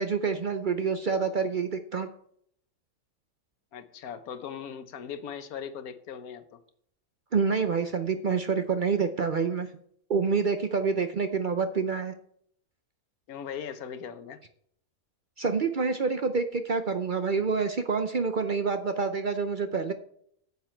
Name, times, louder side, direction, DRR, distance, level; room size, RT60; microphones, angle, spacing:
voice 1, 0.0-2.1 7.3-9.7 10.1-12.1 15.4-19.9, right 5 dB, 50° right, 8 dB, 0.6 m, -27 dB
voice 2, 3.7-6.6 13.3-14.4, left 7 dB, 80° left, 10 dB, 1.4 m, -39 dB
9.4 x 8.3 x 4.4 m, 0.66 s
omnidirectional pair, 1.5 m